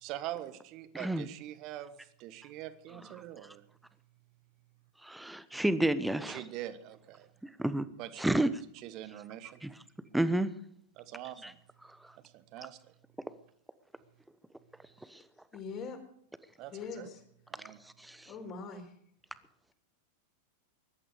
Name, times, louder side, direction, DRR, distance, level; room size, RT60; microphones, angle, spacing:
voice 1, 0.0-3.6 6.3-7.3 8.0-8.3 8.7-9.6 11.0-11.6 12.2-12.9 16.6-17.1 17.5-17.8, right 13 dB, 40° right, 13 dB, 1.4 m, -44 dB
voice 2, 0.9-1.3 5.0-6.4 7.6-7.9 8.2-8.5 9.6-9.7 10.1-10.5 11.4-11.5 11.8-12.0 15.1-15.2 17.8-18.3, right 1 dB, 5° right, 14 dB, 1.0 m, -30 dB
voice 3, 15.5-16.0 16.7-17.2 18.2-18.9, left 5 dB, 30° left, 5 dB, 4.1 m, -42 dB
21.5 x 12.0 x 5.0 m, 0.71 s
figure-of-eight pair, 90°, 0 cm